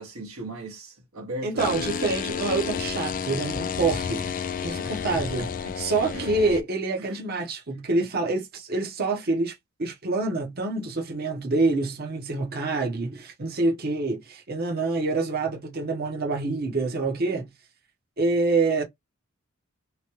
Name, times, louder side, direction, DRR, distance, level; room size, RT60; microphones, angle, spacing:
voice 1, 0.0-1.9 6.1-6.3 7.0-7.2, right 1 dB, 85° right, 1.2 m, -37 dB
voice 2, 1.4-4.3 4.6-17.5 18.2-18.8, right 3 dB, 45° right, 0.8 m, -26 dB
sound 1, 1.6-6.6, left 6 dB, 40° left, 0.3 m, -31 dB
3.0 x 2.2 x 2.9 m
head